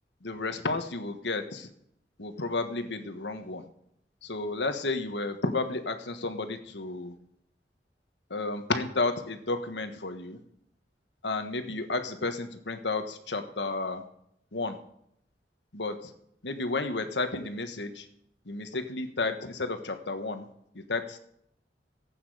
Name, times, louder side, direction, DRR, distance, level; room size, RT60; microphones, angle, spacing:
voice 1, 0.2-1.7 2.2-3.6 4.2-7.1 8.3-10.4 11.2-14.0 14.5-14.8 15.7-16.1 16.4-18.1 18.5-20.5 20.7-21.2, left 3 dB, 80° left, 8 dB, 1.5 m, -32 dB
16.0 x 8.8 x 5.0 m, 0.71 s
head